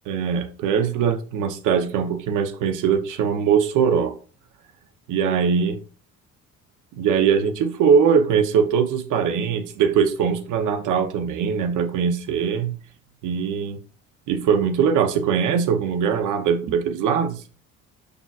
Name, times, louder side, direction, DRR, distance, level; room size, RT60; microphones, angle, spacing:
voice 1, 0.1-4.1 5.1-5.8 7.0-12.8 13.2-13.8 14.3-17.4, right 7 dB, 90° right, 0.8 m, -21 dB
6.7 x 5.9 x 2.4 m
cardioid pair, 90°, 30 cm